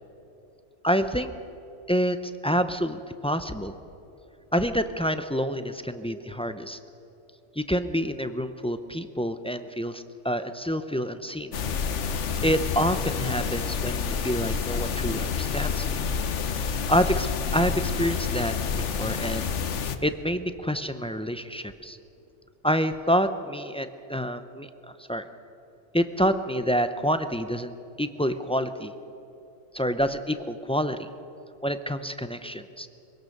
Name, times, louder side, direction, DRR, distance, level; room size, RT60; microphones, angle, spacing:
voice 1, 0.8-1.3 1.9-2.2 2.4-3.8 4.5-6.8 7.6-11.5 12.4-16.0 16.9-19.5 20.0-22.0 22.6-25.2 25.9-28.9 29.7-31.1 31.6-32.9, equal, 10° left, 10 dB, 0.4 m, -27 dB
sound 1, 11.5-20.0, left 6 dB, 70° left, 1.2 m, -28 dB
23.0 x 17.5 x 6.6 m, 2.9 s
omnidirectional pair, 1.3 m